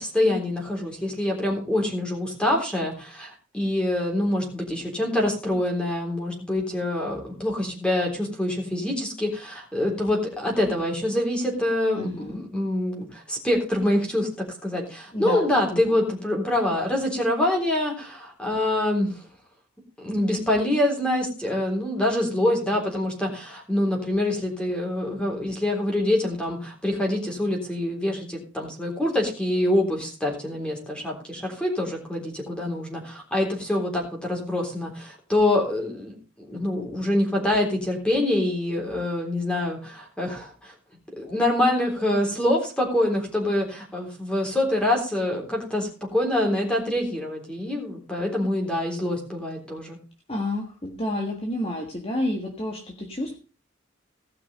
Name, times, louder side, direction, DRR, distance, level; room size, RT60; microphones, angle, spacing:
voice 1, 0.0-19.2 20.0-40.7 41.2-50.0, left 1 dB, 5° left, 0 dB, 3.5 m, -25 dB
voice 2, 11.9-12.4 15.1-16.0 50.3-53.3, left 1 dB, 30° left, 1 dB, 1.7 m, -30 dB
16.0 x 6.0 x 5.4 m, 0.35 s
head